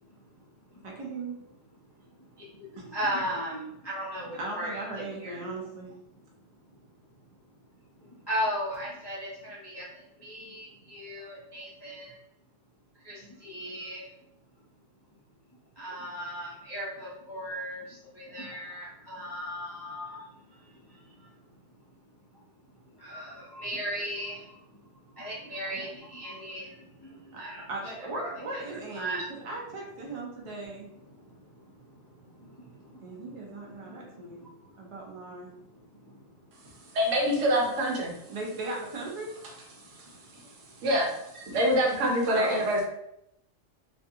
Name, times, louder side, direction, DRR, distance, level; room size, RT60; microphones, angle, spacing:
voice 1, 0.8-1.4 2.8-3.0 4.4-5.9 27.3-27.4 27.7-30.9 33.0-34.4 34.8-35.5 38.3-39.3 42.3-42.7, right 2 dB, 50° right, -2 dB, 0.4 m, -37 dB
voice 2, 2.9-5.4 8.3-9.8 10.2-12.1 13.0-14.0 15.8-17.8 18.2-20.2 23.0-24.4 25.2-26.6 27.4-27.6 28.5-29.2, equal, 30° left, -8 dB, 0.4 m, -36 dB
voice 3, 36.9-38.1 40.8-41.1 41.5-42.9, equal, 75° right, -1 dB, 1.0 m, -25 dB
2.5 x 2.3 x 2.7 m, 0.79 s
omnidirectional pair, 1.3 m